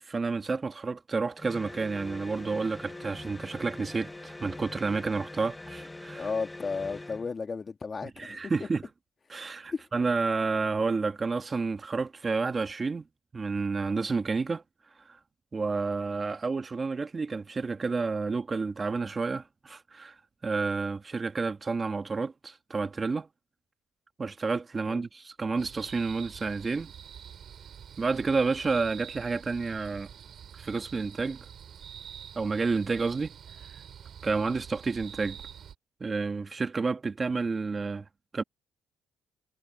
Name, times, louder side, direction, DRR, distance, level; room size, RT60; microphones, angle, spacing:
voice 1, 0.0-6.3 8.0-8.8 9.3-13.1 13.3-14.6 15.0-15.2 15.5-23.3 24.2-26.9 28.0-30.1 30.6-31.4 32.3-33.3 34.2-35.4 36.0-38.0 38.3-38.4, right 4 dB, 30° right, 1.4 m, -30 dB
sound 1, 1.4-7.3, left 2 dB, 15° left, 1.1 m, -43 dB
voice 2, 6.2-8.7 9.7-9.9 24.9-25.0, left 4 dB, 35° left, 2.2 m, -34 dB
sound 2, 25.6-35.7, right 8 dB, 55° right, 4.6 m, -46 dB
cardioid pair, 95°, 0 cm